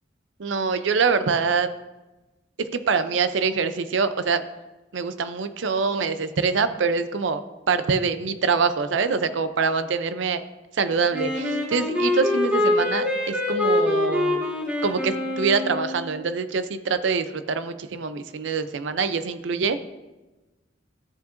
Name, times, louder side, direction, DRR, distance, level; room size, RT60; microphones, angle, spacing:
voice 1, 0.4-1.7 2.6-4.4 4.9-7.4 7.7-10.4 10.7-14.5 14.8-19.8, right 5 dB, 90° right, 12 dB, 0.5 m, -24 dB
Wind instrument woodwind instrument, 11.1-16.2, left 2 dB, 10° right, 1.5 m, -24 dB
14.0 x 5.6 x 2.5 m, 1.1 s
head